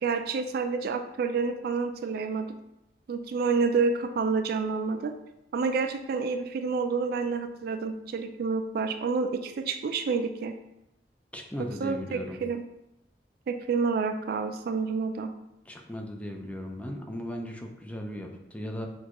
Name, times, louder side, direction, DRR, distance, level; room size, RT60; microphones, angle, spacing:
voice 1, 0.0-2.5 3.1-5.1 5.5-10.5 11.8-12.6 13.5-15.3, right 4 dB, 60° right, 8 dB, 0.3 m, -29 dB
voice 2, 11.3-12.4 15.7-18.9, equal, 10° left, 2 dB, 0.4 m, -37 dB
6.3 x 2.4 x 2.9 m, 0.88 s
head